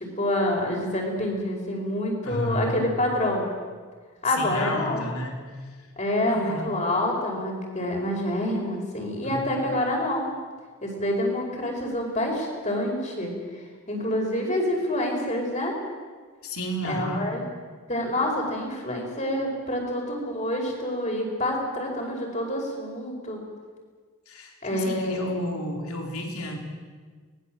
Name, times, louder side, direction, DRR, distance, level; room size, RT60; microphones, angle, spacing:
voice 1, 0.0-3.5 4.2-5.1 6.0-10.4 10.8-13.3 13.9-15.7 16.8-17.4 17.9-23.4 24.6-25.3, left 1 dB, 30° left, 0 dB, 5.3 m, -27 dB
voice 2, 2.2-2.8 4.2-5.4 6.3-6.8 9.2-9.8 16.4-17.3 24.3-26.6, equal, 80° left, 2 dB, 3.8 m, -32 dB
24.0 x 20.0 x 7.7 m, 1.5 s
head